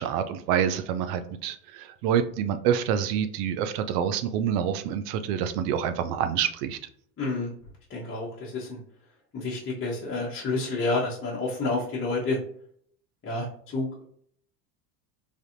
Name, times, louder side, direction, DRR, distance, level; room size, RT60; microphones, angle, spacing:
voice 1, 0.0-6.8, right 9 dB, 75° right, 9 dB, 0.6 m, -27 dB
voice 2, 7.2-7.5 7.9-8.8 9.3-12.4 13.2-13.5 13.7-14.0, left 3 dB, 25° left, -6 dB, 1.0 m, -29 dB
3.4 x 2.6 x 2.5 m, 0.63 s
supercardioid pair, 95°, 48 cm